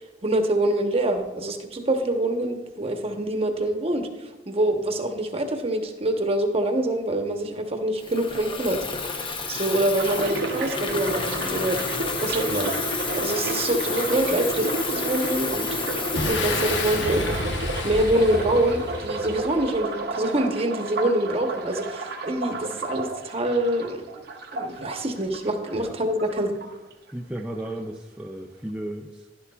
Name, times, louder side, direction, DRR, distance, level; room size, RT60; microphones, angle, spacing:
voice 1, 0.0-8.8 9.5-11.8 12.2-12.7 13.2-15.7 16.3-17.4 17.8-24.0 24.5-26.5, right 1 dB, 35° right, 5 dB, 0.9 m, -25 dB
Water tap faucet / Fill (with liquid), 8.0-18.2, left 4 dB, 30° left, 0.7 m, -31 dB
sound 1, 10.0-25.9 26.2-27.1 27.4-27.7, right 3 dB, 60° right, 0.7 m, -32 dB
Boom, 16.1-19.8, left 2 dB, 80° left, 1.0 m, -30 dB
voice 2, 27.1-29.5, right 1 dB, 5° right, 0 dB, 0.4 m, -35 dB
11.0 x 11.0 x 2.3 m, 1.1 s
head